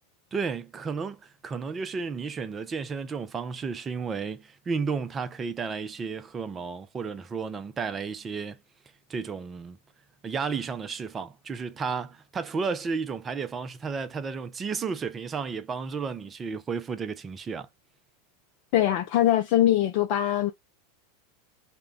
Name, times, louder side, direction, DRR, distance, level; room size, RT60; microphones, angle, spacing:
voice 1, 0.3-8.6 9.1-9.8 10.2-17.7, right 5 dB, 25° right, 0.5 m, -32 dB
voice 2, 18.7-20.5, left 12 dB, 55° left, 0.4 m, -22 dB
2.3 x 2.2 x 3.6 m
hypercardioid pair, 95°, 0 cm